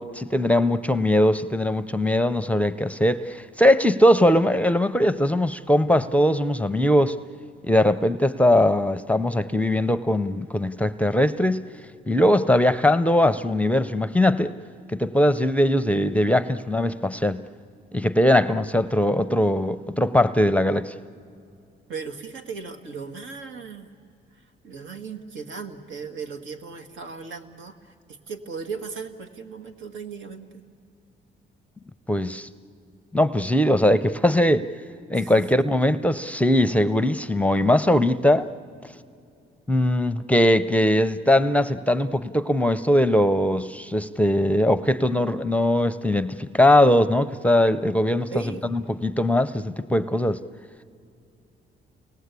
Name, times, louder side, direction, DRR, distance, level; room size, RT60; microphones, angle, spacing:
voice 1, 0.0-7.2 7.6-11.6 12.1-14.5 14.9-17.4 17.9-20.9 32.1-32.5 33.1-34.7 35.1-38.5 39.7-48.3 48.7-50.4, left 1 dB, 5° left, 12 dB, 0.6 m, -20 dB
voice 2, 21.9-23.9 24.3-30.6 35.1-35.7 48.3-48.6, right 5 dB, 80° right, 7 dB, 1.8 m, -37 dB
30.0 x 19.0 x 8.3 m, 2.5 s
cardioid pair, 90°, 20 cm